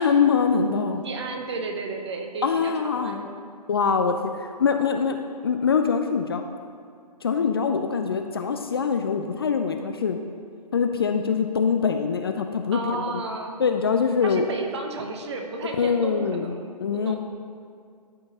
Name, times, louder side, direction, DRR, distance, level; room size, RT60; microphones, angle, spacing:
voice 1, 0.0-1.0 2.4-3.2 3.7-5.2 5.4-6.4 7.2-10.2 10.7-13.2 13.6-14.5 15.8-17.2, left 6 dB, 35° left, 6 dB, 0.4 m, -23 dB
voice 2, 1.0-3.3 12.7-13.6 14.2-17.2, right 3 dB, 40° right, 3 dB, 0.9 m, -33 dB
12.0 x 5.0 x 2.9 m, 2.2 s
figure-of-eight pair, 135°, 21 cm